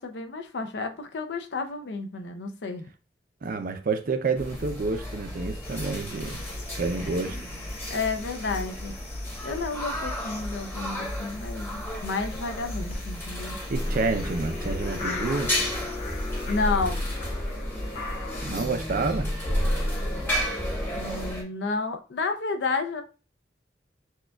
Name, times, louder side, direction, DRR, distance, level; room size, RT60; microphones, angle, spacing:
voice 1, 0.0-2.8 7.9-8.9 9.4-13.6 16.5-17.0 21.0-23.0, left 4 dB, 70° left, 0.5 m, -31 dB
voice 2, 3.4-6.4 6.8-7.4 13.7-15.5 18.4-19.3, right 3 dB, 50° right, 0.5 m, -29 dB
sound 1, 4.3-21.4, left 1 dB, 15° left, 0.9 m, -34 dB
sound 2, 5.6-16.6, left 3 dB, 35° left, 0.7 m, -47 dB
sound 3, 13.7-21.3, left 1 dB, 50° left, 1.7 m, -31 dB
6.2 x 2.3 x 2.2 m
head